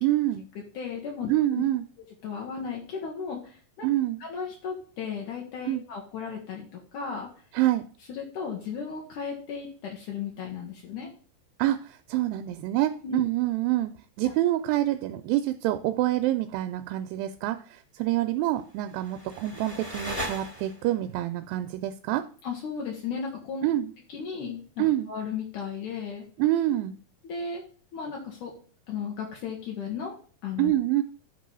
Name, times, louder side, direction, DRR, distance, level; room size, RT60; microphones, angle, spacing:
voice 1, 0.0-0.4 1.3-1.8 3.8-4.2 5.7-5.8 7.5-7.8 11.6-13.9 14.2-22.2 23.6-23.9 24.8-25.1 26.4-27.0 30.6-31.0, right 14 dB, 85° right, 8 dB, 2.3 m, -26 dB
voice 2, 0.7-1.6 2.2-3.9 4.2-7.3 8.1-11.1 13.0-13.2 14.2-14.3 22.4-23.7 24.1-26.3 27.2-27.6 27.9-28.5 28.9-30.1 30.4-30.7, left 6 dB, 70° left, -1 dB, 2.5 m, -35 dB
sound 1, 18.7-21.1, equal, 10° left, 1.7 m, -38 dB
11.0 x 3.8 x 5.4 m, 0.43 s
omnidirectional pair, 4.0 m